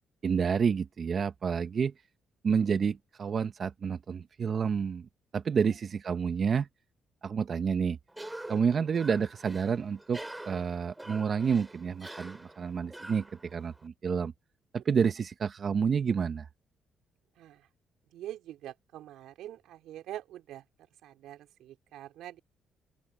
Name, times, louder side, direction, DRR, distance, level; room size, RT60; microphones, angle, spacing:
voice 1, 0.2-1.9 2.4-5.1 5.3-6.7 7.2-8.0 8.5-10.2 10.4-14.3 14.7-16.5, right 6 dB, 45° right, 1.1 m, -29 dB
Cough, 8.1-13.9, right 1 dB, 10° right, 3.1 m, -46 dB
voice 2, 17.4-17.7 18.1-20.6 21.0-22.4, right 13 dB, 85° right, 3.9 m, -45 dB
open air
cardioid pair, 90°, 0 cm